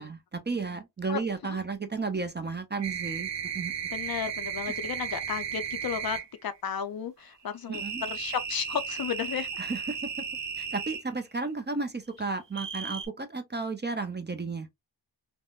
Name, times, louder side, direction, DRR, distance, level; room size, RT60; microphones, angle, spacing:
voice 1, 0.0-3.3 3.5-3.7 7.7-8.0 9.6-10.2 10.6-14.7, right 4 dB, 25° right, 0.4 m, -33 dB
voice 2, 1.1-1.6 3.9-9.6, left 8 dB, 55° left, 0.5 m, -34 dB
sound 1, 2.8-6.3 7.7-11.0 12.5-13.1, right 7 dB, 75° right, 0.9 m, -35 dB
3.5 x 2.1 x 2.3 m
wide cardioid pair, 70°, 43 cm